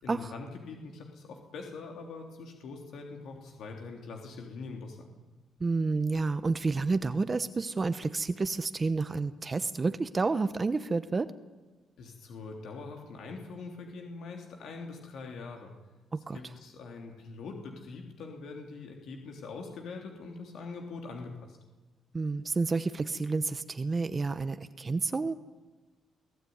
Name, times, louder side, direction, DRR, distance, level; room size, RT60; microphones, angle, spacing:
voice 1, 0.0-5.1 12.0-15.7 16.3-21.6, left 4 dB, 75° left, 2 dB, 3.4 m, -43 dB
voice 2, 5.6-11.3 16.1-16.4 22.1-25.3, right 3 dB, 30° right, 12 dB, 1.0 m, -30 dB
23.5 x 16.5 x 9.6 m, 1.2 s
cardioid pair, 90°, 0 cm